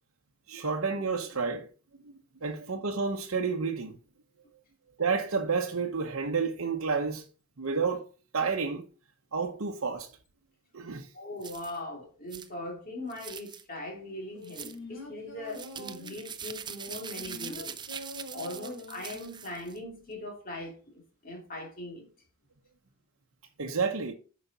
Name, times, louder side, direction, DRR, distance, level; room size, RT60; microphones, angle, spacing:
voice 1, 0.5-1.7 2.0-2.1 2.4-4.0 5.0-7.2 7.6-8.1 8.3-8.9 9.3-10.1 10.7-11.1 23.6-24.1, right 5 dB, 70° right, 0.9 m, -30 dB
voice 2, 11.1-17.8 18.3-22.1, left 1 dB, 40° left, 2.6 m, -40 dB
sound 1, 11.4-11.8 12.3-12.5 13.1-13.6 14.4-14.8 15.5-19.8, right 8 dB, 20° right, 0.4 m, -43 dB
sound 2, 14.3-16.3 16.9-19.3 19.6-19.7, left 1 dB, 70° left, 3.1 m, -44 dB
8.1 x 5.1 x 4.0 m
head